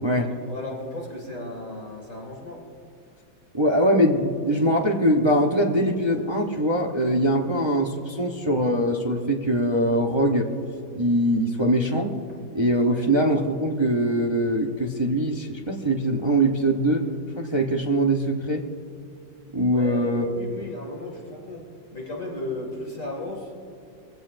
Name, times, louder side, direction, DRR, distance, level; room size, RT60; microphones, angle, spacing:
voice 1, 0.2-2.7 12.8-13.1 19.7-23.5, left 2 dB, 40° left, -1 dB, 2.6 m, -35 dB
voice 2, 3.5-10.5 10.9-12.2 12.5-17.0 17.4-18.6 19.5-20.3, right 1 dB, 50° right, 0 dB, 0.3 m, -22 dB
22.5 x 16.0 x 2.6 m, 2.4 s
omnidirectional pair, 2.1 m